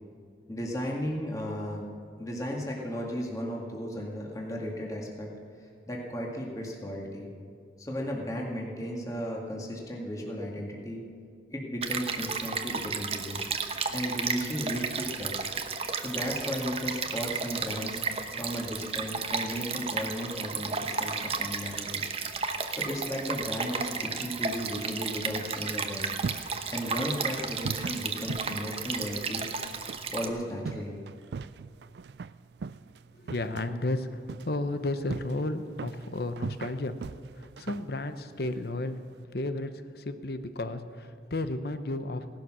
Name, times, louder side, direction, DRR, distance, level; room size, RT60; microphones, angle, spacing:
voice 1, 0.5-1.9 2.2-5.3 5.9-7.3 7.8-11.0 11.5-13.4 13.9-15.4 16.0-18.0 18.3-22.0 22.7-26.1 26.7-29.5 30.1-31.0, equal, 20° left, -2 dB, 2.0 m, -35 dB
Stream, 11.8-30.3, right 5 dB, 35° right, 1.0 m, -33 dB
sound 1, 25.9-39.3, right 4 dB, 65° right, 0.4 m, -42 dB
voice 2, 33.1-36.9 37.4-39.0 39.3-42.3, left 2 dB, 60° left, 10 dB, 0.9 m, -33 dB
17.5 x 11.5 x 6.3 m, 2.4 s
head